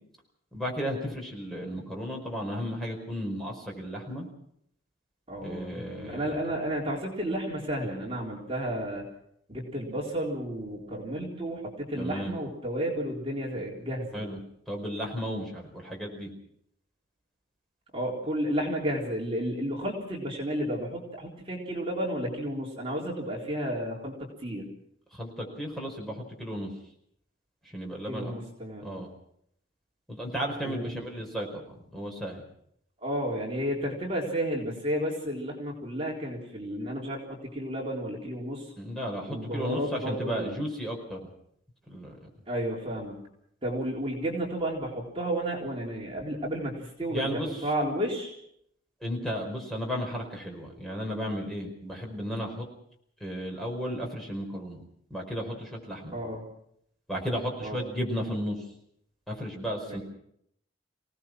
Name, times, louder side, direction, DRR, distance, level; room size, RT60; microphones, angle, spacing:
voice 1, 0.5-4.3 5.4-6.4 12.0-12.3 14.1-14.4 14.7-16.3 25.1-26.7 27.6-28.3 28.8-29.1 30.1-32.4 38.8-41.2 41.9-42.3 47.1-47.7 49.0-52.6 53.2-54.8 55.1-56.2 57.1-58.6 59.3-60.0, equal, ahead, 0 dB, 4.9 m, -34 dB
voice 2, 5.3-9.0 9.5-14.2 17.9-24.1 24.4-24.7 28.1-29.0 30.6-31.0 33.0-38.7 39.3-40.6 42.5-43.2 43.6-48.3 56.1-56.4 57.6-57.8 59.9-60.0, equal, 30° right, -2 dB, 3.8 m, -32 dB
27.0 x 18.0 x 6.1 m, 0.72 s
head